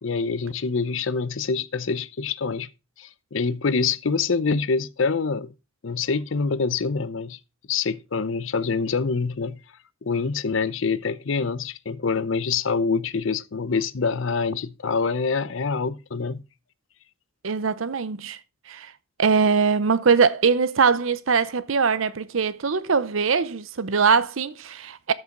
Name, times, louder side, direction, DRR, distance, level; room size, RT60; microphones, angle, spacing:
voice 1, 0.0-2.7 3.0-5.5 5.8-7.4 7.7-9.6 10.0-16.4, left 4 dB, 70° left, 0.6 m, -25 dB
voice 2, 17.4-18.4 18.7-18.9 19.2-25.1, right 5 dB, 75° right, 0.7 m, -22 dB
13.0 x 5.6 x 3.8 m
head